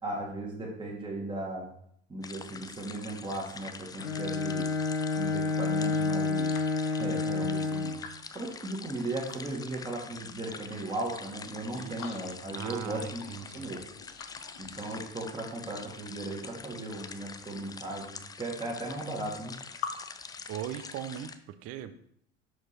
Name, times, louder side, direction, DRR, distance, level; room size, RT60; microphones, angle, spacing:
voice 1, 0.0-1.7 2.1-4.7 5.1-6.6 7.0-8.0 8.3-13.2 13.5-13.8 14.6-19.5, right 2 dB, 15° right, -2 dB, 1.8 m, -37 dB
sound 1, 2.2-21.4, left 5 dB, 10° left, 0.3 m, -45 dB
Bowed string instrument, 4.0-8.2, left 4 dB, 90° left, 0.5 m, -29 dB
sound 2, 6.5-9.5 9.9-11.4 11.7-12.6 12.9-15.4 16.1-17.3 18.1-18.2 18.3-19.9 20.2-21.2, left 8 dB, 55° left, 0.9 m, -47 dB
voice 2, 12.5-13.7 20.5-22.0, right 10 dB, 40° right, 11 dB, 0.7 m, -39 dB
6.2 x 4.8 x 4.3 m, 0.67 s
figure-of-eight pair, 65°, 35 cm